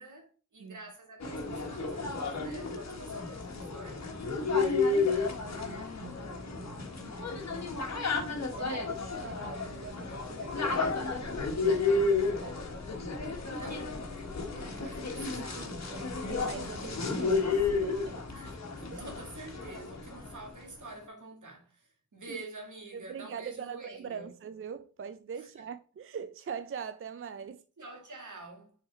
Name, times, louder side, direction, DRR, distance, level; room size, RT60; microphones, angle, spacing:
voice 1, 0.0-4.1 13.6-15.9 18.3-24.3 25.4-25.7 27.8-28.7, right 2 dB, 65° right, 2.1 m, -48 dB
sound 1, 1.2-20.5, left 4 dB, 55° left, 1.3 m, -32 dB
voice 2, 4.5-6.9 7.1-7.8 8.2-12.6 14.6-16.0 16.3-18.3 18.9-19.0 22.3-22.4 22.9-27.6, right 7 dB, 40° right, 0.4 m, -44 dB
6.2 x 3.9 x 4.2 m
wide cardioid pair, 80°, 33 cm